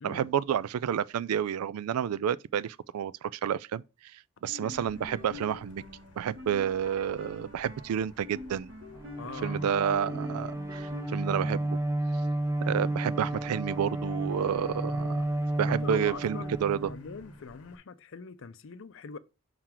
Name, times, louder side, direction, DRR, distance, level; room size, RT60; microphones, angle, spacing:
voice 1, 0.0-3.8 4.1-5.8 6.2-8.7 9.4-11.8 12.6-15.3 15.6-16.9, right 8 dB, 85° right, 0.3 m, -30 dB
sound 1, 4.4-11.8, left 3 dB, 60° right, 1.8 m, -47 dB
Motor vehicle (road), 4.8-17.8, left 3 dB, 80° left, 0.9 m, -56 dB
Bowed string instrument, 8.9-17.4, right 1 dB, 15° right, 0.5 m, -32 dB
voice 2, 9.2-10.0 15.7-19.2, left 5 dB, 60° left, 0.5 m, -43 dB
5.9 x 3.9 x 4.4 m
head